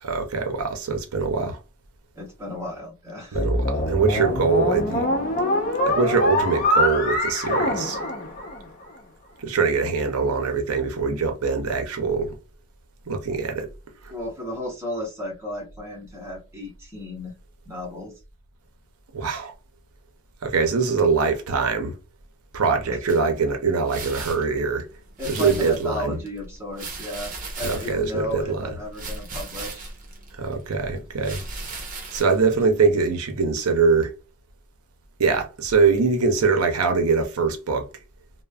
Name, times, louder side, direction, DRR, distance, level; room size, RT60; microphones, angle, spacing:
voice 1, 0.0-1.6 3.3-5.1 5.9-8.0 9.4-12.3 13.1-13.7 14.0-14.1 19.1-19.5 20.4-21.9 22.5-24.9 25.3-26.2 27.6-28.7 30.4-31.4 32.1-34.1 35.2-37.9, right 4 dB, 85° right, 0.6 m, -23 dB
voice 2, 2.2-3.4 14.1-17.3 17.7-18.1 22.9-23.0 25.2-29.9 32.5-32.6, left 1 dB, 10° right, 0.9 m, -33 dB
sound 1, 3.3-8.8, left 1 dB, 40° left, 0.7 m, -24 dB
sound 2, 23.1-33.1, right 3 dB, 35° right, 0.7 m, -38 dB
3.1 x 2.1 x 2.3 m
head